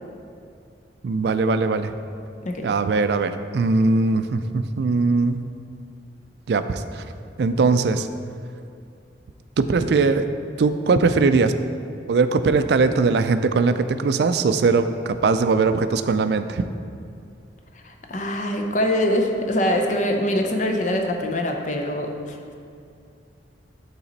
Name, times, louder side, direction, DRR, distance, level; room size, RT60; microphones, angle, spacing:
voice 1, 1.0-1.9 2.6-5.5 6.5-7.0 7.4-8.1 9.6-10.3 10.6-11.5 12.1-16.6, right 4 dB, 65° right, 10 dB, 0.3 m, -20 dB
voice 2, 17.8-22.6, left 1 dB, 45° left, 3 dB, 0.6 m, -24 dB
8.6 x 4.2 x 4.0 m, 2.4 s
head